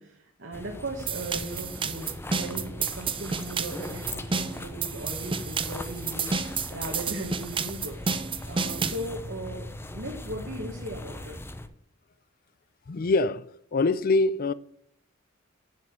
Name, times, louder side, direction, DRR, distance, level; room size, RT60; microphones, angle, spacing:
voice 1, 0.0-6.3 6.7-8.0 8.5-9.7 9.9-11.4, right 1 dB, 70° right, 1.8 m, -37 dB
sound 1, 0.5-11.7, left 1 dB, 10° left, 0.7 m, -40 dB
sound 2, 1.1-9.1, right 5 dB, 25° right, 0.7 m, -31 dB
voice 2, 12.9-13.4 13.7-14.5, left 3 dB, 45° left, 0.5 m, -23 dB
8.6 x 7.6 x 4.6 m
head